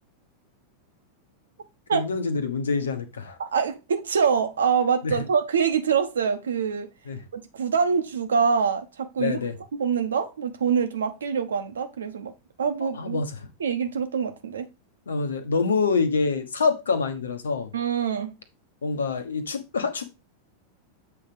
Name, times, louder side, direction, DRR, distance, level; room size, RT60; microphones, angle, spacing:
voice 1, 1.9-3.4 5.0-5.1 7.1-7.2 9.2-9.5 12.8-13.5 15.1-17.7 18.8-20.1, left 4 dB, 70° left, 1.2 m, -26 dB
voice 2, 3.4-6.9 7.3-9.4 9.8-12.3 12.6-13.2 13.6-14.7 17.7-18.4, right 6 dB, 65° right, 1.1 m, -25 dB
7.7 x 3.5 x 5.1 m
figure-of-eight pair, 90°, 0 cm